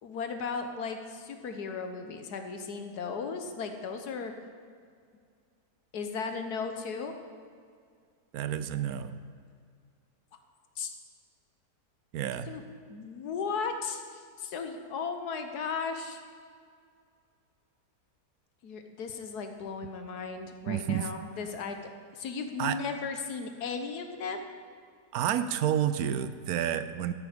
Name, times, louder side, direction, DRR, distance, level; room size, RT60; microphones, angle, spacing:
voice 1, 0.0-4.3 5.9-7.1 10.8-10.9 12.5-12.6 12.9-16.2 18.6-21.8 22.1-24.4, left 5 dB, 75° left, 6 dB, 1.5 m, -36 dB
voice 2, 8.3-9.2 12.1-12.5 20.7-21.1 22.6-22.8 25.1-27.1, right 10 dB, 70° right, 12 dB, 1.0 m, -30 dB
13.0 x 10.5 x 5.1 m, 2.2 s
omnidirectional pair, 1.7 m